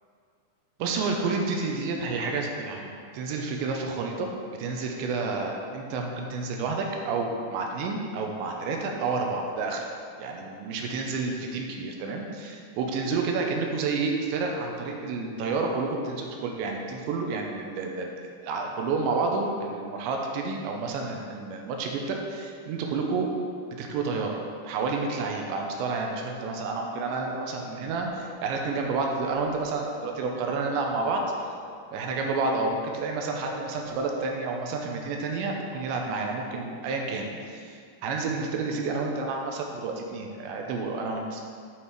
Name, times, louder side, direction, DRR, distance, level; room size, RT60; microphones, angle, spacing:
voice 1, 0.8-4.3 4.6-9.9 10.2-18.1 18.4-23.3 23.8-31.2 31.9-41.4, right 4 dB, 80° right, 1 dB, 2.9 m, -30 dB
Bird, 27.5-30.0 31.1-31.3 31.6-34.0, left 4 dB, 85° left, 2.3 m, -45 dB
9.2 x 5.8 x 4.8 m, 2.4 s
omnidirectional pair, 5.4 m